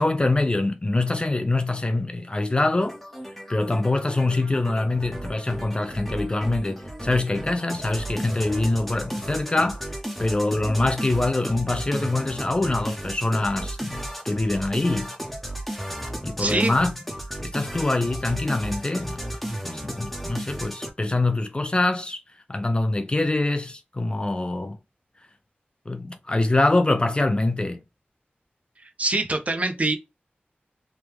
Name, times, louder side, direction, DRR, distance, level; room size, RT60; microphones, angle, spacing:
voice 1, 0.0-3.0 3.5-9.8 10.2-15.2 16.2-17.0 17.4-19.3 19.6-22.2 22.5-24.8 25.9-27.8, left 2 dB, 25° left, 0.3 m, -24 dB
sound 1, 2.8-20.9, right 1 dB, 5° left, 0.8 m, -34 dB
voice 2, 16.4-16.8 29.0-30.0, right 2 dB, 40° right, 0.6 m, -24 dB
3.0 x 2.2 x 3.3 m
wide cardioid pair, 90°, 4 cm